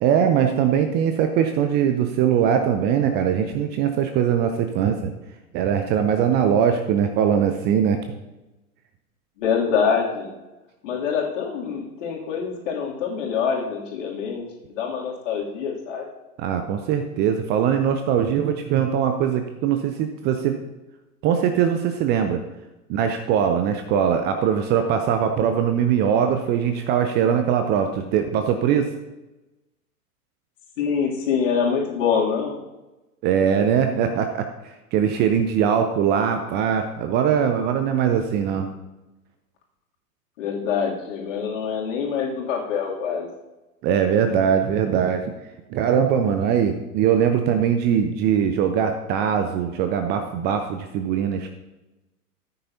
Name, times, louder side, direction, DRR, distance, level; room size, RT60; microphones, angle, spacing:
voice 1, 0.0-5.1 5.5-8.0 16.4-20.6 21.2-22.4 22.9-28.9 33.2-38.7 43.8-45.2 45.7-51.5, right 8 dB, 25° right, 7 dB, 0.6 m, -21 dB
voice 2, 9.4-10.3 10.8-16.0 30.8-32.5 40.4-43.3, left 6 dB, 55° left, -2 dB, 2.8 m, -25 dB
14.5 x 9.2 x 2.8 m, 1.0 s
figure-of-eight pair, 100°, 45 cm